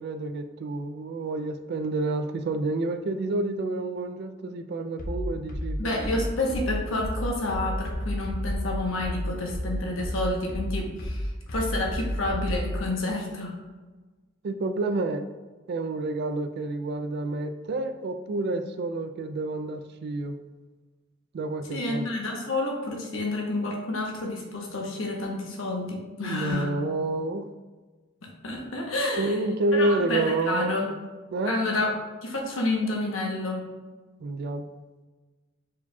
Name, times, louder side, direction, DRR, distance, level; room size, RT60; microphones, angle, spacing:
voice 1, 0.0-6.0 14.4-15.3 15.7-20.4 21.3-22.1 26.2-27.5 29.2-30.7 31.3-31.5 34.2-34.7, right 2 dB, 55° right, 8 dB, 0.3 m, -29 dB
sound 1, 5.0-12.8, equal, 45° left, 0.6 m, -31 dB
voice 2, 5.8-13.6 21.7-26.7 28.4-29.4 29.7-30.9 31.4-33.7, left 2 dB, 85° left, -1 dB, 0.9 m, -29 dB
4.7 x 4.1 x 2.3 m, 1.3 s
head